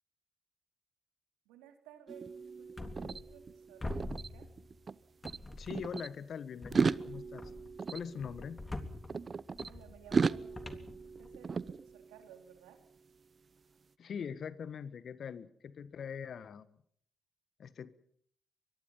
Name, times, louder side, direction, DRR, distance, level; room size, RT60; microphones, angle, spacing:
voice 1, 1.4-4.5 9.7-12.8 15.1-15.2, right 10 dB, 85° right, 5 dB, 3.4 m, -57 dB
sound 1, 2.1-5.0 5.2-6.1 6.6-9.7 10.1-12.4, right 5 dB, 45° right, 0.8 m, -36 dB
sound 2, 2.8-3.5 3.8-4.9 5.2-6.1 6.6-11.7, left 2 dB, 25° left, 3.3 m, -46 dB
voice 2, 5.6-7.5 7.9-8.6 14.0-16.7 17.6-17.9, left 7 dB, 60° left, 15 dB, 1.5 m, -42 dB
24.0 x 22.5 x 5.6 m, 0.65 s
hypercardioid pair, 45°, 0 cm